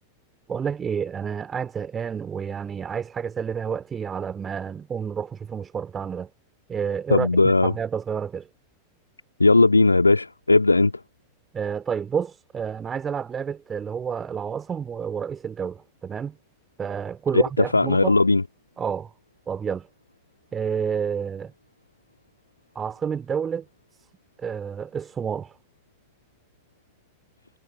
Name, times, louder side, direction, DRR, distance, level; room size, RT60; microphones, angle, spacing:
voice 1, 0.5-6.3 6.7-8.5 11.5-16.4 16.8-18.1 18.8-19.1 19.5-19.9 20.5-21.5 22.7-23.6 24.4-25.5, right 7 dB, 20° right, 2.6 m, -29 dB
voice 2, 7.1-7.7 9.4-10.9 17.3-18.4, left 3 dB, 80° left, 2.1 m, -18 dB
figure-of-eight pair, 90°, 0 cm